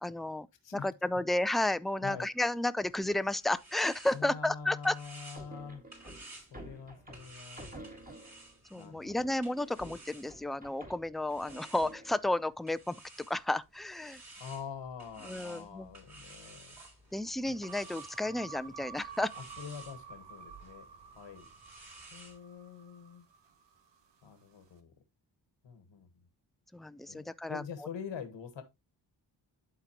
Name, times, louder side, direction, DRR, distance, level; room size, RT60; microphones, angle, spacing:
voice 1, 0.0-0.5 0.7-5.0 8.7-14.2 15.2-15.9 17.1-19.3 26.7-27.9, left 1 dB, ahead, 0.4 m, -32 dB
sound 1, 2.9-10.7 11.3-22.4, right 2 dB, 35° right, 3.2 m, -55 dB
voice 2, 4.1-5.8 6.5-7.7 8.7-9.3 14.4-16.8 17.5-17.6 18.2-18.5 19.4-20.9 21.1-21.5 22.1-23.3 24.2-24.9 25.6-26.2 27.1-28.6, left 6 dB, 75° left, 1.4 m, -45 dB
sound 2, 5.3-8.6 9.1-12.3, right 1 dB, 20° right, 2.0 m, -50 dB
sound 3, 17.6-24.0, right 6 dB, 70° right, 1.2 m, -50 dB
11.5 x 3.9 x 2.9 m
cardioid pair, 50°, 45 cm